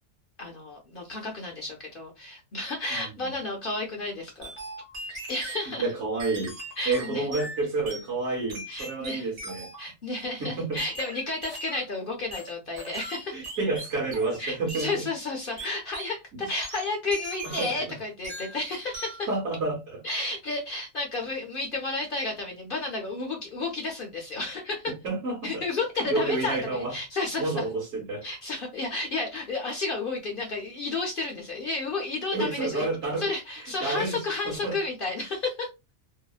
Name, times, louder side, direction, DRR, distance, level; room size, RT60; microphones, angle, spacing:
voice 1, 0.4-4.5 5.3-5.9 6.8-7.3 8.7-9.3 9.8-13.5 14.4-19.3 20.0-24.9 25.4-27.6 28.2-32.9 33.2-35.7, left 3 dB, 50° left, 0.7 m, -32 dB
voice 2, 2.9-3.4 5.8-6.5 6.9-9.7 10.4-10.8 13.3-15.0 15.6-15.7 16.3-16.4 17.4-18.0 19.3-20.0 24.9-25.6 26.0-26.9 27.4-28.3 32.3-33.3 33.6-34.8, right 3 dB, 60° right, 1.1 m, -30 dB
sound 1, 4.4-5.7 6.2-8.1 8.5-9.9 10.8-11.8 12.3-14.4 14.7-15.0 15.6-16.2 16.6-17.9 18.2-18.6 18.9-19.3, right 1 dB, 35° right, 0.7 m, -40 dB
2.7 x 2.0 x 2.3 m
omnidirectional pair, 1.4 m